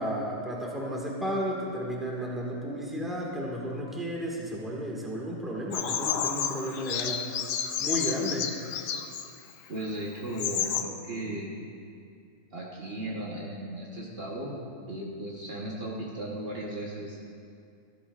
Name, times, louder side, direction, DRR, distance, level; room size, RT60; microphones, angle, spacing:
voice 1, 0.0-7.3 7.8-8.6, equal, ahead, -3 dB, 1.5 m, -33 dB
Bird vocalization bird call bird song, 5.7-9.3 9.9-10.0 10.3-10.8, left 8 dB, 75° left, 1.0 m, -31 dB
voice 2, 9.7-11.5 12.5-17.2, right 1 dB, 45° right, -4 dB, 1.3 m, -36 dB
15.0 x 12.5 x 2.4 m, 2.4 s
omnidirectional pair, 1.4 m